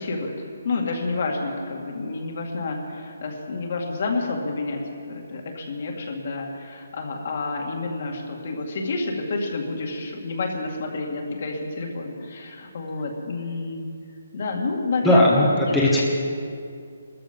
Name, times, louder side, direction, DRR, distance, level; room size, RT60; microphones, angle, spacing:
voice 1, 0.0-13.8 14.3-15.7, left 3 dB, 45° left, 1 dB, 2.2 m, -29 dB
voice 2, 15.0-16.0, left 1 dB, ahead, -8 dB, 1.4 m, -18 dB
19.5 x 14.0 x 5.4 m, 2.3 s
hypercardioid pair, 170°, 0 cm